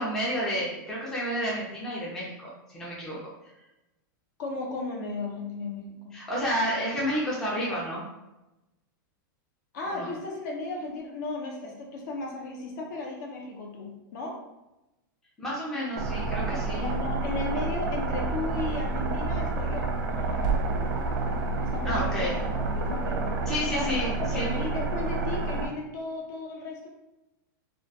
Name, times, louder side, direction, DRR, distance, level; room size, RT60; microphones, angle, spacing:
voice 1, 0.0-3.2 6.1-8.0 9.9-10.1 15.4-16.9 21.8-22.4 23.5-24.5, equal, 5° left, -6 dB, 0.3 m, -30 dB
voice 2, 4.4-6.2 9.7-14.4 16.8-20.7 21.6-23.4 23.7-26.9, left 3 dB, 55° left, 0 dB, 0.6 m, -35 dB
sound 1, 15.9-25.7, right 3 dB, 65° right, 0.4 m, -29 dB
2.2 x 2.2 x 2.6 m, 0.96 s
supercardioid pair, 165°, 11 cm